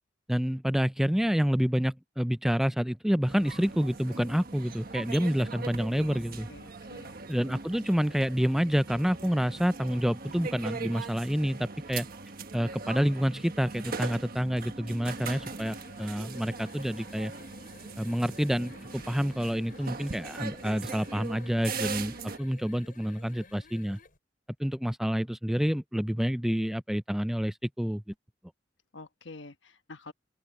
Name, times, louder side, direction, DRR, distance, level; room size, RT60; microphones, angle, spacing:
voice 1, 0.3-6.5 7.3-12.1 12.5-17.3 18.0-24.0 24.6-28.0, equal, ahead, 0.4 m, -28 dB
sound 1, 3.3-22.4, right 4 dB, 55° right, 1.3 m, -40 dB
voice 2, 6.5-7.2 28.9-30.1, left 3 dB, 90° left, 1.3 m, -47 dB
sound 2, 15.0-24.2, left 3 dB, 50° left, 7.2 m, -54 dB
open air
head